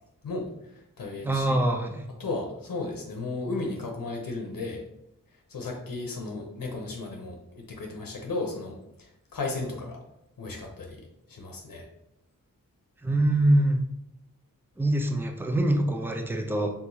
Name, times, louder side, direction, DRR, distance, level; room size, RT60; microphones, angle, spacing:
voice 1, 0.2-1.6 2.2-4.8 5.5-10.0 10.4-11.0 11.3-11.9, left 3 dB, 80° left, 1 dB, 0.8 m, -35 dB
voice 2, 1.2-2.1 13.0-13.8 14.8-16.7, right 1 dB, 5° right, 3 dB, 0.5 m, -24 dB
4.7 x 3.5 x 2.7 m, 0.82 s
wide cardioid pair, 95°, 33 cm